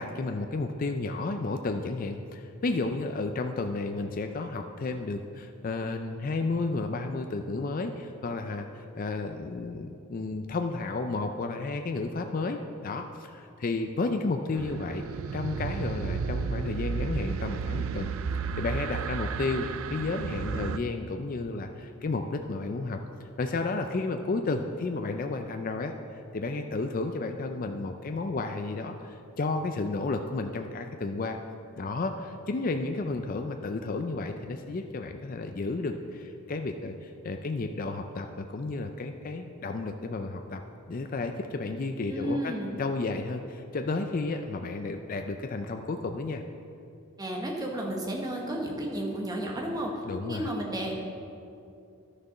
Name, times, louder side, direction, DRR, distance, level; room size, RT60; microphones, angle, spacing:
voice 1, 0.0-15.0 15.3-23.0 23.4-25.9 26.3-31.4 31.8-40.6 40.9-46.4 50.0-50.5, left 3 dB, 40° left, 6 dB, 0.4 m, -32 dB
sound 1, 14.5-20.8, right 5 dB, 65° right, 0.4 m, -33 dB
voice 2, 42.1-42.7 47.2-50.0 50.3-51.0, right 1 dB, 15° right, -1 dB, 1.2 m, -32 dB
11.5 x 6.6 x 5.5 m, 2.6 s
head